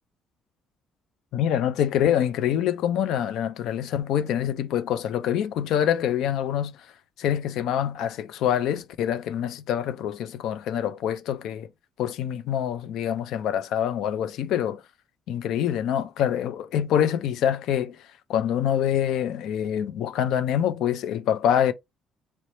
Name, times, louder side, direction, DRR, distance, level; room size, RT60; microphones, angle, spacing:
voice 1, 1.3-6.8 7.2-11.7 12.0-14.8 15.3-18.0 18.3-21.7, left 10 dB, 75° left, 0.4 m, -25 dB
4.1 x 2.0 x 3.1 m
cardioid pair, 135°, 0 cm